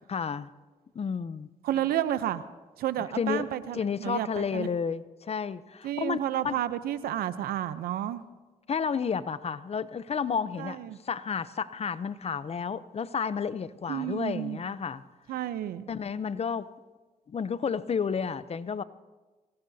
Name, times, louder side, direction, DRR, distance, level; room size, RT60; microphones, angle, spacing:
voice 1, 0.1-0.5 0.9-1.5 3.1-6.2 6.4-6.5 8.7-15.0 15.9-16.7 17.3-18.8, left 6 dB, 45° left, 16 dB, 0.6 m, -31 dB
voice 2, 1.6-2.4 2.8-4.3 4.5-4.7 5.8-8.2 10.6-11.0 13.9-14.6 15.3-15.9, right 11 dB, 90° right, 14 dB, 0.7 m, -31 dB
23.5 x 17.5 x 2.8 m, 1.3 s
cardioid pair, 70°, 15 cm